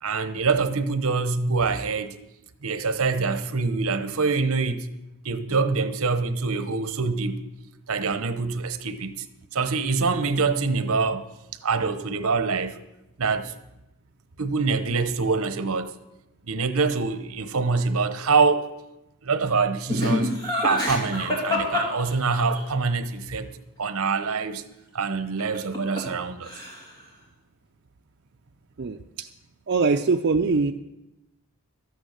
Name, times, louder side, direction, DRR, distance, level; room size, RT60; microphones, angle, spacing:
voice 1, 0.0-2.2 2.6-4.9 5.2-7.4 7.9-9.3 9.5-11.3 11.6-12.8 13.2-13.5 14.4-15.9 16.5-18.7 19.2-20.3 20.6-23.5 23.8-24.6 24.9-26.5, right 4 dB, 75° right, 0.9 m, -25 dB
Laughter, 19.9-22.6 25.4-26.2 26.4-27.0, left 1 dB, 20° left, 3.0 m, -26 dB
voice 2, 28.8-29.3 29.7-30.7, right 4 dB, 50° right, 0.4 m, -23 dB
13.0 x 9.2 x 6.6 m
head